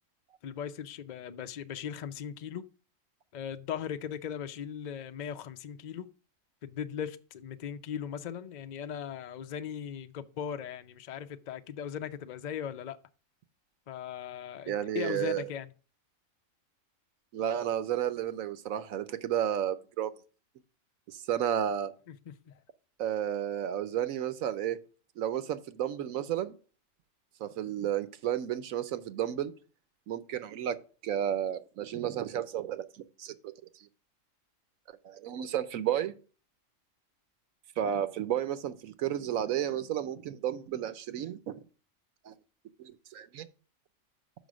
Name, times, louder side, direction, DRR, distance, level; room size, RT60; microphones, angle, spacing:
voice 1, 0.4-2.7 3.3-6.1 6.6-13.0 13.9-15.7 22.1-22.5, left 8 dB, 50° left, 0.5 m, -38 dB
voice 2, 14.7-15.5 17.3-20.1 21.1-21.9 23.0-24.8 25.2-26.5 27.4-29.5 30.1-30.8 31.0-32.8 33.2-33.3 35.0-36.1 37.8-41.6 42.2-42.3 42.8-43.5, right 10 dB, 85° right, 1.1 m, -32 dB
6.2 x 5.1 x 6.1 m
omnidirectional pair, 1.4 m